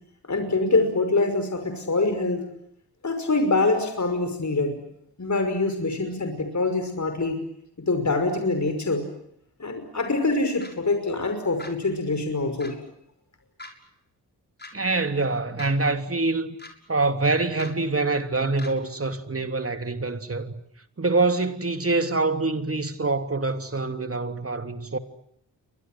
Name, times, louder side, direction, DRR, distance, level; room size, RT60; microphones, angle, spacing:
voice 1, 0.3-2.4 3.0-4.8 5.2-7.4 7.9-9.0 9.6-12.8, left 3 dB, 45° left, 5.8 m, -24 dB
sound 1, 10.6-10.7 11.6-11.7 12.6-12.7 13.6-13.7 14.6-14.7 15.6-15.7 16.6-16.7 17.6-17.7 18.6-18.7, left 2 dB, 25° left, 7.1 m, -40 dB
voice 2, 14.7-16.6 16.9-20.5 21.0-25.0, right 3 dB, 35° right, 3.2 m, -25 dB
29.5 x 24.0 x 7.7 m
cardioid pair, 45°, 40 cm